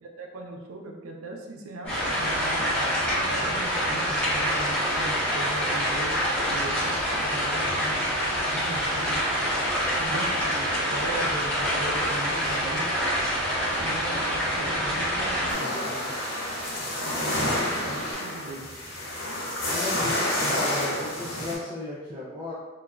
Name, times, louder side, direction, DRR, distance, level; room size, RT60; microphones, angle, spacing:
voice 1, 0.0-2.7 3.1-6.2 6.5-8.0 8.5-9.2 10.0-12.9 13.6-15.8 16.7-18.7, right 2 dB, 85° right, 1 dB, 0.5 m, -39 dB
Stream, 1.9-18.1, equal, 40° left, 1.0 m, -38 dB
sound 1, 1.9-15.5, equal, 10° left, 0.8 m, -26 dB
voice 2, 12.0-12.9 14.6-16.2 19.6-22.5, left 2 dB, 25° right, -8 dB, 0.4 m, -37 dB
sound 2, 15.5-21.5, left 1 dB, 70° left, 0.7 m, -29 dB
3.0 x 2.3 x 2.3 m, 1.2 s
head